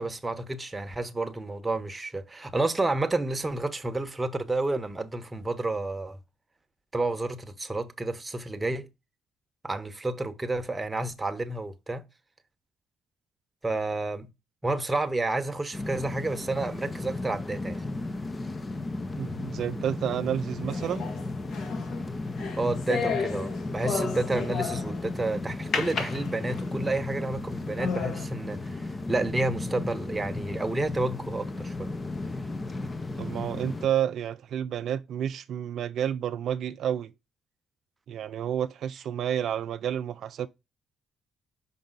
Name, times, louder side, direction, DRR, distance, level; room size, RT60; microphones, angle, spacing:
voice 1, 0.0-6.2 6.9-8.9 9.6-12.0 13.6-14.3 14.6-17.8 22.6-31.9, right 2 dB, 20° right, 1.0 m, -30 dB
sound 1, 15.7-33.9, left 2 dB, 25° left, 0.8 m, -35 dB
voice 2, 19.2-21.1 33.2-37.1 38.1-40.5, right 9 dB, 70° right, 0.4 m, -30 dB
sound 2, 20.7-25.1 25.7-26.8 27.3-27.4 27.8-28.2, left 5 dB, 65° left, 1.9 m, -33 dB
5.4 x 5.4 x 3.9 m
cardioid pair, 90°, 0 cm